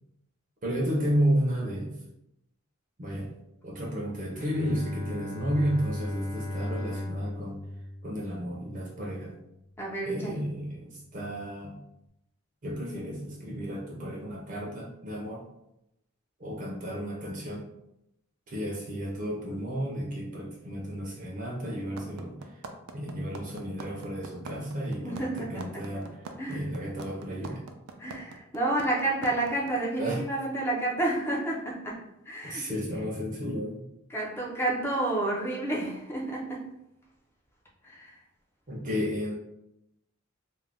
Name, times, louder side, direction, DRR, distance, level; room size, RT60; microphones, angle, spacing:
voice 1, 0.6-1.9 3.0-3.3 3.6-7.6 8.0-9.4 10.0-11.8 12.6-15.4 16.4-17.6 18.5-22.4 22.9-26.2 26.5-27.6 30.0-30.2 32.4-33.8 38.7-39.4, equal, 40° right, -2 dB, 0.5 m, -32 dB
Bowed string instrument, 4.3-9.6, left 1 dB, 90° left, 0.7 m, -38 dB
voice 2, 9.8-10.4 25.0-25.8 26.4-26.6 28.0-32.0 32.3-32.6 34.1-36.6 37.8-38.2, right 2 dB, 10° left, -3 dB, 0.4 m, -30 dB
sound 1, 22.0-29.7, right 4 dB, 90° right, 0.4 m, -42 dB
2.5 x 2.1 x 3.3 m, 0.84 s
head